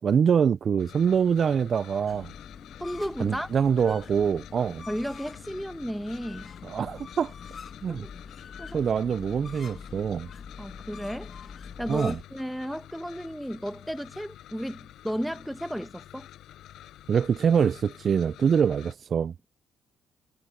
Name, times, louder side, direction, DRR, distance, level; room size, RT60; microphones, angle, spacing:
voice 1, 0.0-2.3 3.2-4.8 6.6-7.3 7.8-8.0 8.7-10.3 11.9-12.2 17.1-19.3, right 7 dB, 50° right, 0.3 m, -24 dB
sound 1, 0.8-18.9, left 13 dB, 80° left, 5.5 m, -49 dB
sound 2, 2.1-12.2, left 6 dB, 45° left, 1.5 m, -45 dB
voice 2, 2.8-3.5 4.9-6.5 7.9-8.1 8.6-8.8 10.6-11.3 11.8-16.3, equal, ahead, 1.1 m, -33 dB
cardioid pair, 90°, 0 cm